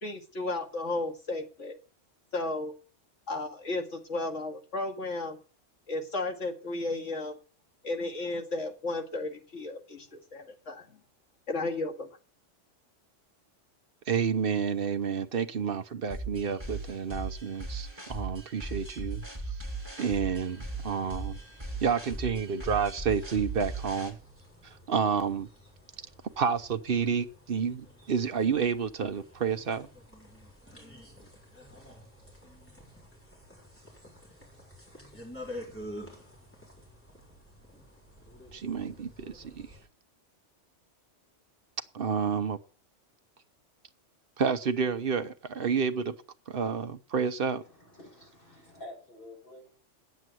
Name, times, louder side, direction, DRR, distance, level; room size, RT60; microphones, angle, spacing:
voice 1, 0.0-1.8 2.3-2.7 3.3-5.4 5.9-7.4 7.8-11.0 11.5-12.1, left 2 dB, 75° left, 2.5 m, -34 dB
voice 2, 14.1-19.6 20.0-21.4 21.8-24.2 24.6-25.5 26.4-29.9 38.5-39.7 41.9-42.6 44.4-46.1 46.5-47.6, right 6 dB, 50° right, 1.0 m, -30 dB
sound 1, 16.1-24.1, right 2 dB, 20° right, 3.2 m, -38 dB
sound 2, 20.3-39.9, equal, 10° left, 4.0 m, -50 dB
voice 3, 47.6-49.8, left 1 dB, 45° left, 6.9 m, -49 dB
9.6 x 8.0 x 7.6 m
omnidirectional pair, 1.3 m